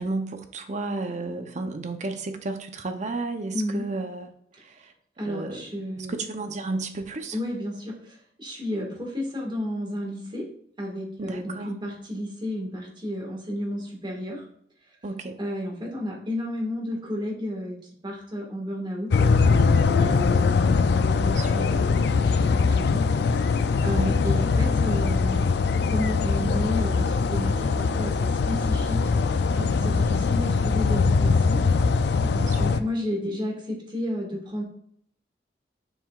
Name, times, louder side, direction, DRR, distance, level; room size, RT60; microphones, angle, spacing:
voice 1, 0.0-4.3 4.6-4.9 5.3-7.4 11.2-11.7 15.0-15.4 20.0-20.5 21.1-22.1 23.8-24.1 29.5-30.0 32.2-32.7, right 3 dB, 45° right, 7 dB, 0.7 m, -33 dB
voice 2, 3.5-3.8 5.2-6.2 7.3-10.4 10.8-14.4 15.4-17.7 18.0-20.5 21.5-25.5 25.9-29.2 29.8-31.6 32.6-34.6, left 1 dB, 30° right, -1 dB, 1.7 m, -32 dB
sound 1, 19.1-32.8, left 4 dB, 65° left, 0.4 m, -22 dB
7.1 x 5.7 x 2.4 m, 0.66 s
head